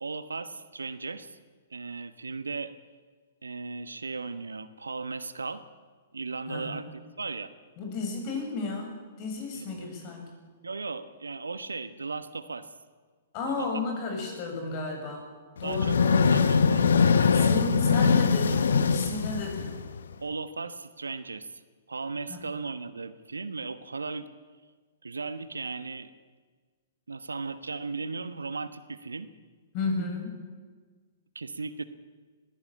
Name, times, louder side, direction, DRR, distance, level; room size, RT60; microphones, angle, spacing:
voice 1, 0.0-1.4 1.7-2.7 3.4-5.6 6.1-6.9 7.2-7.5 9.5-9.9 10.6-12.7 13.4-13.8 15.6-17.9 20.2-21.6 21.9-24.3 25.0-26.1 27.1-29.3 31.3-31.8, right 4 dB, 80° right, 13 dB, 1.2 m, -36 dB
voice 2, 6.5-6.9 7.8-10.3 13.3-15.3 15.6-16.4 17.3-19.7 22.3-22.4 29.7-30.4, left 3 dB, 40° left, 3 dB, 7.2 m, -33 dB
sound 1, 15.6-20.1, left 5 dB, 70° left, 1.1 m, -22 dB
20.5 x 16.5 x 8.7 m, 1.5 s
figure-of-eight pair, 115°, 0 cm